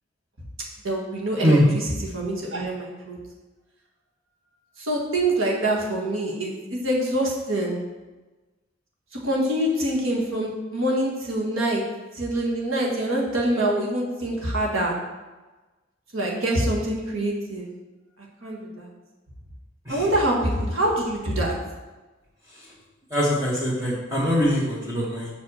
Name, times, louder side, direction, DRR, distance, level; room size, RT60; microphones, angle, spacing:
voice 1, 0.8-3.2 4.8-7.8 9.1-11.8 12.1-14.9 16.1-17.7 18.4-18.9 19.9-21.5, right 1 dB, 85° right, -2 dB, 1.7 m, -25 dB
voice 2, 23.1-25.3, equal, 15° right, -7 dB, 1.4 m, -22 dB
5.7 x 5.3 x 6.3 m, 1.2 s
head